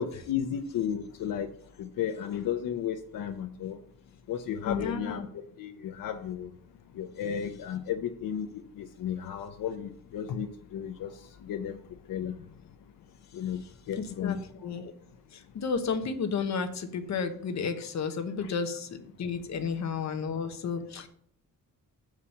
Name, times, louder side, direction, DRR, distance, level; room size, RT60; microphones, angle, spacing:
voice 1, 0.0-1.5 1.8-3.8 4.3-5.2 5.6-6.5 6.9-11.1 11.4-11.8 12.1-12.3 13.3-13.6 13.9-14.5 18.4-18.5, left 9 dB, 90° left, 5 dB, 0.7 m, -33 dB
voice 2, 4.7-5.3 14.0-14.9 15.3-21.1, left 5 dB, 55° left, 7 dB, 1.1 m, -32 dB
7.1 x 4.8 x 7.0 m, 0.64 s
wide cardioid pair, 165°, 32 cm